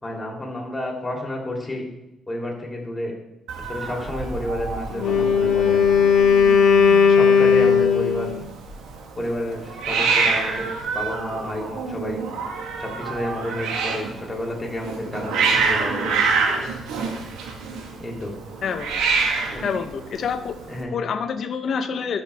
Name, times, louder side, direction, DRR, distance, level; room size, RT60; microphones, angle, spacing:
voice 1, 0.0-1.8 2.3-3.1 3.6-6.0 7.1-8.4 9.2-10.7 10.9-12.2 12.8-16.4 18.0-18.3 19.4-19.6 20.7-20.9, left 1 dB, 20° left, -1 dB, 2.9 m, -30 dB
Hiss, 3.5-20.8, right 4 dB, 90° right, 1.3 m, -27 dB
Wind instrument woodwind instrument, 4.9-8.4, left 6 dB, 80° left, 1.1 m, -16 dB
voice 2, 7.0-7.4 18.6-18.9 19.6-20.6 20.9-22.2, left 6 dB, 60° left, 9 dB, 0.8 m, -27 dB
13.0 x 5.6 x 3.4 m, 0.91 s
cardioid pair, 90°, 0 cm